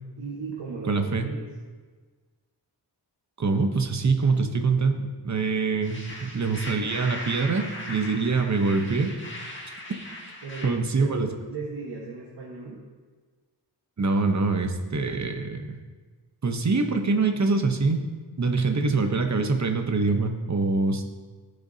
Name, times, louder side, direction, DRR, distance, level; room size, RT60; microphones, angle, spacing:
voice 1, 0.2-1.4 10.4-12.8, right 4 dB, 85° right, -3 dB, 1.5 m, -37 dB
voice 2, 0.9-1.2 3.4-9.1 10.6-11.3 14.0-15.8 16.4-18.0 18.4-21.0, right 4 dB, 40° right, 5 dB, 0.9 m, -24 dB
sound 1, 5.8-10.7, left 1 dB, 25° left, 1.7 m, -39 dB
15.5 x 6.7 x 2.8 m, 1.4 s
wide cardioid pair, 110°, 42 cm